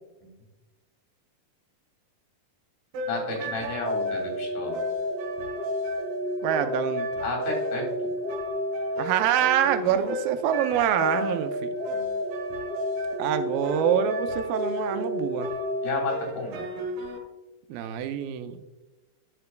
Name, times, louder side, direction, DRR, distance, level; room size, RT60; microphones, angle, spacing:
sound 1, 2.9-17.2, left 1 dB, 70° right, 2.5 m, -31 dB
voice 1, 3.1-4.8 7.2-8.1 11.9-12.1 15.8-16.6, left 3 dB, 75° left, -1 dB, 4.2 m, -32 dB
voice 2, 6.4-7.1 9.0-11.7 13.2-15.5 17.7-18.6, right 9 dB, 85° right, 9 dB, 2.3 m, -25 dB
10.5 x 6.6 x 2.2 m, 1.1 s
omnidirectional pair, 4.1 m